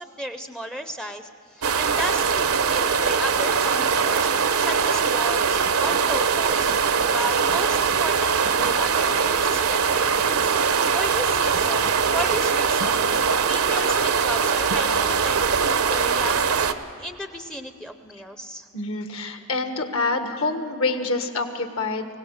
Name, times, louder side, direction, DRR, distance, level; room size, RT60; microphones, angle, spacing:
voice 1, 0.0-4.3 4.6-6.7 7.1-10.5 10.9-13.1 13.4-16.5 17.0-18.7, equal, 5° left, 8 dB, 0.6 m, -34 dB
sound 1, 1.6-16.7, right 6 dB, 70° right, 0.8 m, -22 dB
voice 2, 18.7-22.1, left 3 dB, 65° left, 6 dB, 1.6 m, -26 dB
23.5 x 17.0 x 6.5 m, 2.6 s
head